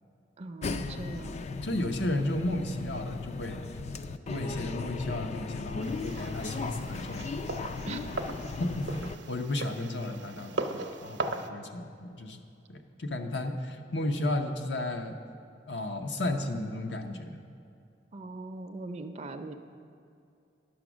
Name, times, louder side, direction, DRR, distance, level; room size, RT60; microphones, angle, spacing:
voice 1, 0.4-1.4 5.8-6.0 7.9-8.1 18.1-19.6, right 2 dB, 40° right, 7 dB, 0.5 m, -40 dB
sound 1, 0.6-9.2, left 3 dB, 40° left, 0.3 m, -37 dB
voice 2, 1.4-3.6 4.3-7.3 8.6-11.2 11.5-12.4 12.7-15.2 15.7-17.4, left 1 dB, 75° left, 5 dB, 0.8 m, -33 dB
sound 2, 5.8-11.5, right 2 dB, 80° right, 0.7 m, -38 dB
10.5 x 7.0 x 6.1 m, 2.5 s
head